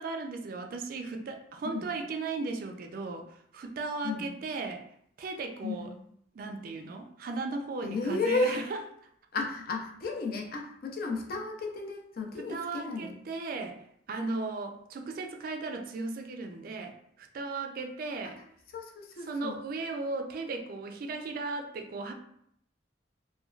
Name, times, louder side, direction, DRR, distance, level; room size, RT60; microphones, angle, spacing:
voice 1, 0.0-3.3 3.5-4.8 5.2-5.9 6.3-8.8 12.4-13.8 14.1-18.4 19.2-22.1, right 3 dB, 50° right, 5 dB, 0.3 m, -36 dB
voice 2, 7.8-8.6 9.3-13.1 18.2-18.4 18.7-19.6, left 3 dB, 50° left, 1 dB, 0.4 m, -33 dB
3.0 x 2.2 x 2.3 m, 0.70 s
head